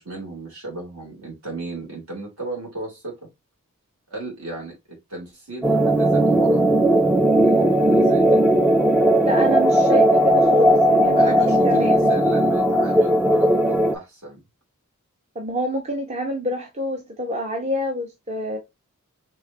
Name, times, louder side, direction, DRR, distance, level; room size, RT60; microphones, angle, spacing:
voice 1, 0.0-3.3 4.1-4.7 5.1-6.6 7.4-8.4 11.2-14.4, right 2 dB, 70° right, 2.6 m, -35 dB
sound 1, 5.6-14.0, right 1 dB, 5° right, 0.3 m, -17 dB
voice 2, 9.2-11.4 11.6-12.1 15.4-18.6, equal, 30° right, 0.7 m, -27 dB
4.7 x 3.2 x 2.5 m
head